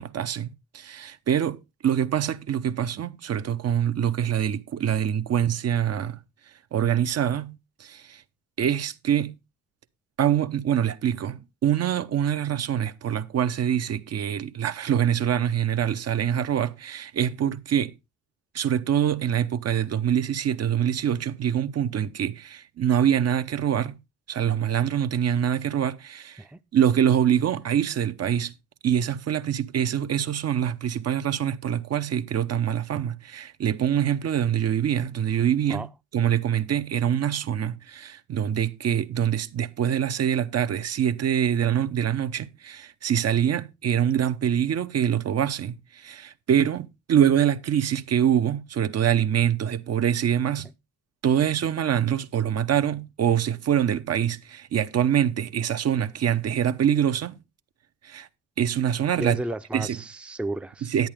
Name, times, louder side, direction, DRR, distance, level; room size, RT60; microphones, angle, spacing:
voice 1, 0.0-6.2 6.7-8.2 8.6-9.4 10.2-17.9 18.5-24.0 24.3-26.4 26.7-28.5 28.8-35.9 36.1-50.7 51.2-57.4 58.0-58.3 58.6-59.4 59.7-60.0 60.9-61.1, right 9 dB, 55° right, 0.9 m, -25 dB
voice 2, 59.2-60.9, right 1 dB, 5° right, 0.6 m, -33 dB
10.5 x 9.0 x 3.5 m
cardioid pair, 90°, 30 cm